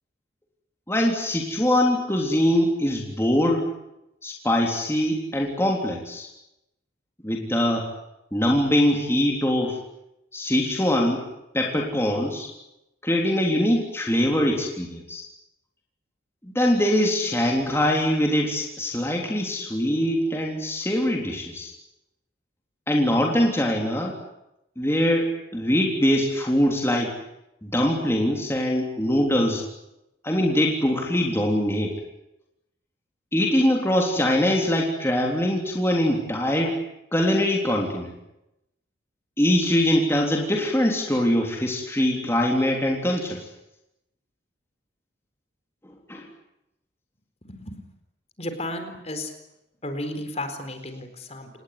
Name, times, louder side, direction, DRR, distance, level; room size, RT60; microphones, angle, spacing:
voice 1, 0.9-3.7 4.2-6.3 7.2-7.9 8.3-9.8 10.3-11.2 11.5-12.5 13.0-15.2 16.4-21.7 22.9-24.2 24.8-27.2 27.6-29.6 30.2-32.0 33.3-36.8 37.1-38.1 39.4-43.5 46.1-46.3, left 1 dB, 15° left, 0 dB, 3.5 m, -23 dB
voice 2, 47.4-47.8 48.4-49.3 49.8-51.5, left 1 dB, 35° left, 8 dB, 4.2 m, -33 dB
28.5 x 19.5 x 9.7 m, 0.87 s
head